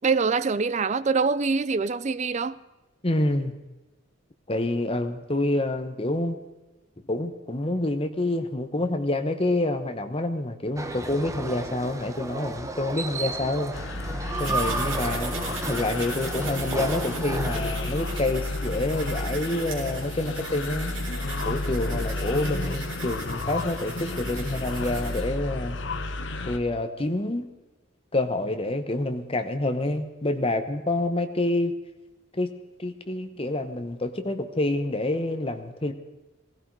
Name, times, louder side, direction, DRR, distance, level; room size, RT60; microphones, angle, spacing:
voice 1, 0.0-2.6, right 4 dB, 35° right, 16 dB, 0.4 m, -24 dB
voice 2, 3.0-3.5 4.5-6.4 7.1-13.7 14.4-15.3 15.7-20.9 21.4-25.8 26.4-27.5 28.1-31.7 32.3-32.5 32.8-35.9, left 2 dB, 25° left, 7 dB, 1.1 m, -27 dB
sound 1, 10.8-17.6, right 2 dB, 15° right, 0.9 m, -33 dB
sound 2, 13.7-26.6, left 2 dB, 60° left, 0.9 m, -31 dB
sound 3, 14.4-25.2, right 4 dB, 65° right, 3.8 m, -39 dB
17.0 x 15.5 x 4.7 m, 1.1 s
head